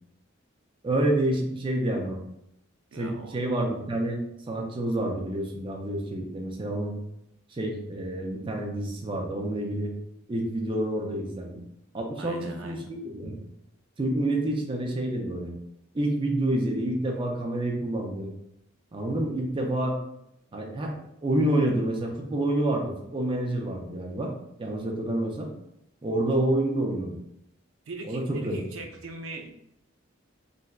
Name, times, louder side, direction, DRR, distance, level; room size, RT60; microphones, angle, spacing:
voice 1, 0.8-2.2 3.0-4.2 4.5-7.0 7.5-9.9 10.3-11.6 11.9-13.5 14.0-15.5 15.9-18.3 18.9-20.0 20.5-24.3 24.6-25.5 26.0-27.2 28.0-28.6, right 1 dB, 25° right, 1 dB, 0.4 m, -28 dB
voice 2, 2.9-3.4 12.2-12.9 27.9-29.5, right 2 dB, 90° right, 4 dB, 0.4 m, -40 dB
3.8 x 2.1 x 2.3 m, 0.80 s
head